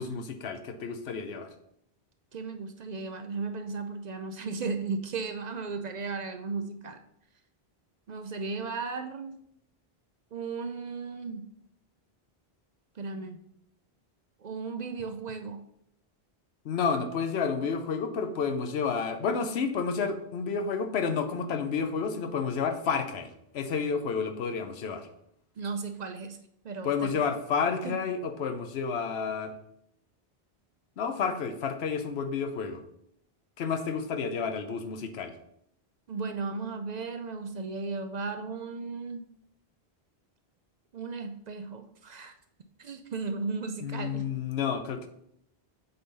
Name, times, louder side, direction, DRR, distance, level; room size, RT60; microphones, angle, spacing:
voice 1, 0.0-1.5 16.6-23.3 23.5-25.1 26.8-29.5 31.0-32.8 33.6-35.3 43.8-45.1, left 5 dB, 80° left, 8 dB, 1.0 m, -30 dB
voice 2, 2.3-7.0 8.1-9.3 10.3-11.4 13.0-13.4 14.4-15.6 25.6-26.4 26.6-27.2 27.8-28.0 36.1-39.3 40.9-42.3 42.8-44.2, right 4 dB, 55° right, 8 dB, 0.5 m, -35 dB
7.8 x 4.0 x 3.8 m, 0.74 s
omnidirectional pair, 1.0 m